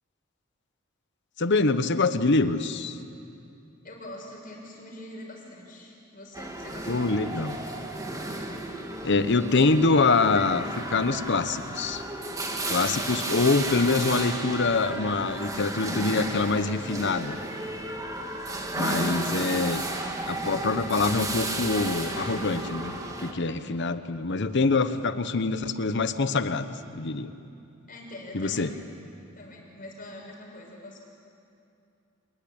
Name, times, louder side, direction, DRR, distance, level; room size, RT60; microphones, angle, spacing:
voice 1, 1.4-3.0 6.9-7.6 9.0-10.7 10.9-12.0 12.7-17.4 18.8-19.8 20.3-22.9 23.2-27.3 28.3-28.7, left 3 dB, 60° left, 11 dB, 1.1 m, -25 dB
voice 2, 3.8-7.5 27.9-28.7 29.4-31.0, left 1 dB, 45° left, 0 dB, 5.9 m, -44 dB
sound 1, 6.3-23.3, right 2 dB, 15° right, 2.0 m, -33 dB
26.5 x 20.5 x 8.9 m, 2.6 s
head